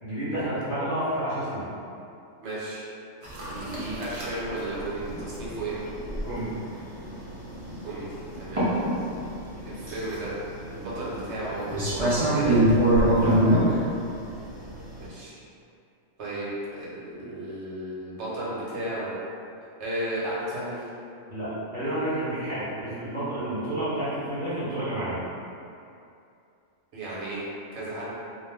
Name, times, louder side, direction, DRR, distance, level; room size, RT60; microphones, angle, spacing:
voice 1, 0.0-1.7 6.2-6.5 13.2-13.4 21.3-25.2, right 1 dB, 45° left, -12 dB, 0.9 m, -30 dB
voice 2, 2.4-2.8 3.4-5.8 7.8-8.6 9.7-10.3 10.7-12.6 15.0-15.3 16.2-19.1 19.8-20.8 26.9-27.4 27.7-28.1, right 1 dB, 65° right, -8 dB, 1.0 m, -34 dB
sound 1, 3.2-15.1, right 1 dB, 50° right, 0.4 m, -26 dB
2.4 x 2.0 x 3.3 m, 2.6 s
omnidirectional pair, 1.3 m